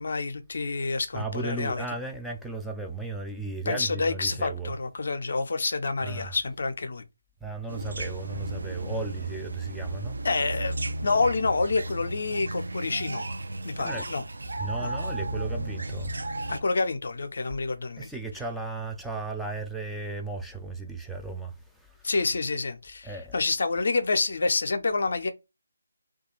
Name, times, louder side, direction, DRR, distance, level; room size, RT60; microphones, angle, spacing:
voice 1, 0.0-1.8 3.7-7.0 10.2-10.8 11.0-13.2 13.6-14.2 14.8-14.9 16.5-18.1 22.0-25.3, left 3 dB, 55° left, 0.5 m, -28 dB
voice 2, 1.1-4.7 6.0-6.4 7.4-10.2 13.8-14.1 14.6-16.2 18.0-22.1 23.0-23.4, right 3 dB, ahead, 0.3 m, -35 dB
sound 1, 7.7-16.6, right 1 dB, 65° right, 0.4 m, -34 dB
2.3 x 2.2 x 2.9 m
figure-of-eight pair, 150°, 0 cm